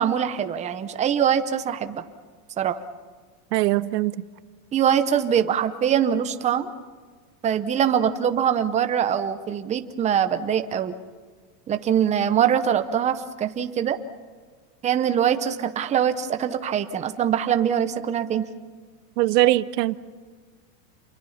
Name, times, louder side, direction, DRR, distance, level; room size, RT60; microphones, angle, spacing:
voice 1, 0.0-2.0 2.6-2.8 4.7-6.7 7.4-10.9 11.7-14.0 14.8-18.5, right 9 dB, 15° right, 0.7 m, -23 dB
voice 2, 3.5-4.2 19.2-20.0, right 16 dB, 80° right, 1.0 m, -21 dB
28.5 x 23.5 x 5.7 m
supercardioid pair, 160°, 49 cm